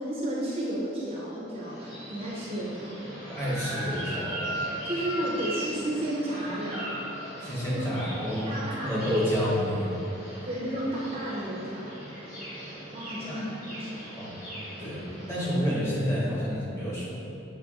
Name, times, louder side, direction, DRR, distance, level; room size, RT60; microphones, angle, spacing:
voice 1, 0.0-3.1 4.8-6.9 7.7-7.8 8.5-9.1 10.4-12.0 12.9-14.0, right 1 dB, 30° right, -6 dB, 0.5 m, -32 dB
sound 1, 1.6-15.5, right 1 dB, 50° left, 1.1 m, -38 dB
voice 2, 3.3-4.5 7.4-8.5 8.8-9.9 13.3-13.4 14.1-14.3 14.8-17.2, equal, 15° left, -8 dB, 0.9 m, -29 dB
6.3 x 3.2 x 2.3 m, 3.0 s
head